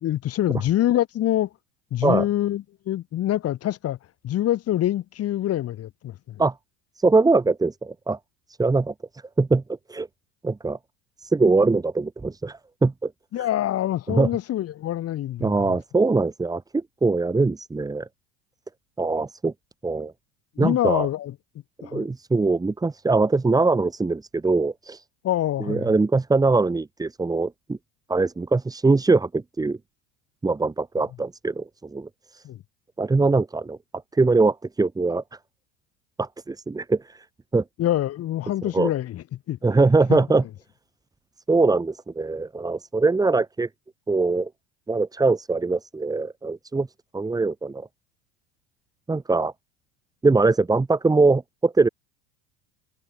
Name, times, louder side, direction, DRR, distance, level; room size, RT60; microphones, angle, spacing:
voice 1, 0.0-1.5 1.9-4.0 4.2-6.4 13.3-15.8 20.6-21.3 21.8-22.1 25.2-25.9 32.4-32.6 37.8-39.6 40.1-40.2, left 13 dB, 40° left, 2.6 m, -25 dB
voice 2, 7.0-8.2 8.6-8.9 9.4-9.6 9.9-10.1 10.4-10.8 11.2-13.1 14.1-14.3 15.4-18.1 19.0-19.5 19.8-20.1 20.6-21.1 21.8-25.0 25.6-27.8 28.1-29.8 30.4-32.4 33.0-33.8 34.1-35.2 36.2-37.2 37.5-37.6 38.6-38.9 39.6-40.4 41.5-43.7 44.1-44.5 44.9-46.9 47.1-47.9 49.1-49.5 50.2-51.9, right 3 dB, 10° right, 1.1 m, -22 dB
hypercardioid pair, 85°, 36 cm